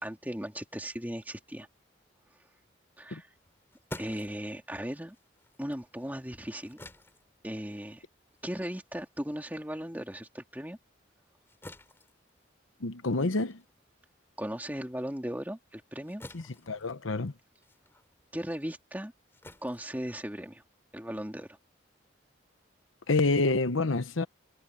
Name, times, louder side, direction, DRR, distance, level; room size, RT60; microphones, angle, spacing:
voice 1, 0.0-1.7 3.0-3.3 4.0-5.2 5.6-6.8 7.4-8.0 8.4-10.8 14.4-16.2 18.3-19.1 19.6-20.6 20.9-21.6, equal, 10° right, 2.5 m, -37 dB
sound 1, 3.3-10.1 10.5-20.7, left 1 dB, 10° left, 3.0 m, -51 dB
voice 2, 12.8-13.6 16.3-17.3 23.1-24.3, left 3 dB, 85° left, 1.0 m, -28 dB
head